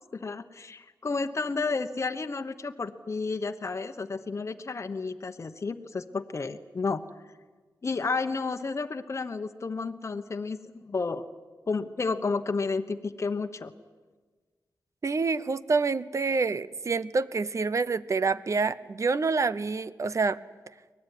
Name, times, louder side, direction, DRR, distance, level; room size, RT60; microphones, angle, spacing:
voice 1, 0.1-7.0 7.8-11.2 11.7-13.7, left 4 dB, 40° left, 6 dB, 1.1 m, -31 dB
voice 2, 15.0-20.4, right 4 dB, 45° right, 16 dB, 0.8 m, -27 dB
23.5 x 19.0 x 9.8 m, 1.4 s
wide cardioid pair, 90°, 7 cm